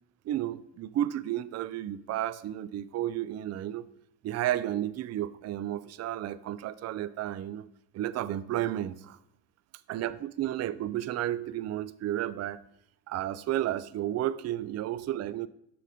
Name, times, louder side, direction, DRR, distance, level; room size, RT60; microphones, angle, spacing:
voice 1, 0.3-3.9 4.2-7.7 7.9-9.2 9.9-12.6 13.1-15.5, right 12 dB, 40° right, 16 dB, 0.4 m, -32 dB
6.4 x 3.9 x 5.0 m, 0.78 s
supercardioid pair, 70°, 39 cm